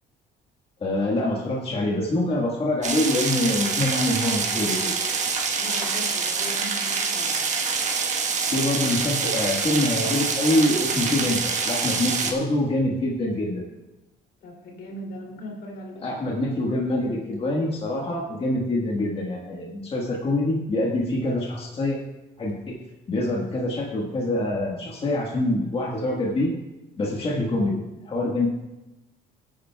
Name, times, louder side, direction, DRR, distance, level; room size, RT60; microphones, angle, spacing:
voice 1, 0.8-5.0 8.5-13.7 16.0-22.0 22.4-22.8 23.1-26.5 27.0-27.8 28.0-28.5, left 1 dB, 35° left, -2 dB, 1.5 m, -25 dB
sound 1, 2.8-12.3, right 5 dB, 45° right, 1.3 m, -26 dB
voice 2, 5.6-7.4 14.4-16.2, left 1 dB, 70° left, 0 dB, 2.8 m, -39 dB
16.5 x 9.0 x 2.3 m, 1.0 s
cardioid pair, 110°, 17 cm